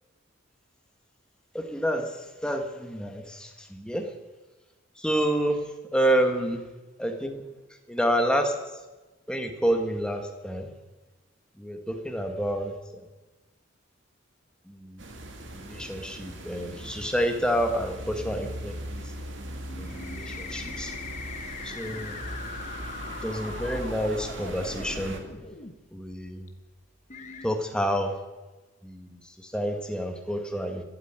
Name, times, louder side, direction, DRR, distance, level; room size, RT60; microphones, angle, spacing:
voice 1, 1.5-2.1 2.4-4.1 5.0-5.6 5.9-6.6 7.0-7.3 7.9-8.5 9.3-10.7 11.6-13.0 14.7-15.0 15.5-19.1 19.8-20.9 21.6-22.2 23.2-25.2 25.9-26.5 27.4-28.1 28.8-30.8, equal, 5° left, 4 dB, 1.6 m, -28 dB
sound 1, 15.0-25.2, right 1 dB, 70° right, 2.2 m, -39 dB
sound 2, 19.7-25.7 26.5-26.6 27.1-27.5, left 5 dB, 35° left, 1.1 m, -41 dB
12.5 x 12.5 x 8.8 m, 1.2 s
head